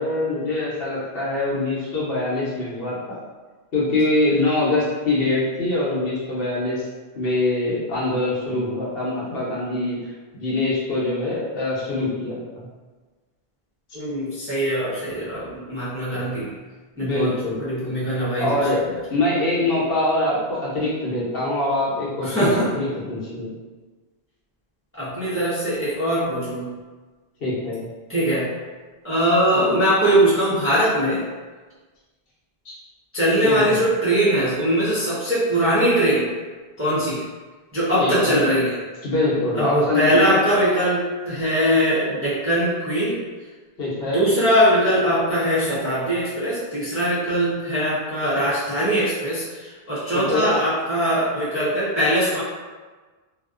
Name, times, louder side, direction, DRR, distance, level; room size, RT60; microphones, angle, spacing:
voice 1, 0.0-3.2 3.7-6.9 7.1-10.0 10.3-12.7 17.0-17.6 18.4-18.8 19.1-23.5 27.4-27.8 32.6-32.7 33.4-33.8 38.0-38.4 39.0-40.4 43.8-44.3 50.1-50.5, left 2 dB, 70° left, -7 dB, 0.9 m, -24 dB
voice 2, 13.9-16.5 17.0-18.7 22.2-22.7 24.9-26.7 28.1-28.5 29.0-31.3 33.1-36.3 36.8-37.3 37.7-38.8 39.5-43.2 44.1-52.4, equal, 20° right, -10 dB, 0.4 m, -21 dB
2.5 x 2.1 x 2.4 m, 1.4 s
omnidirectional pair, 1.0 m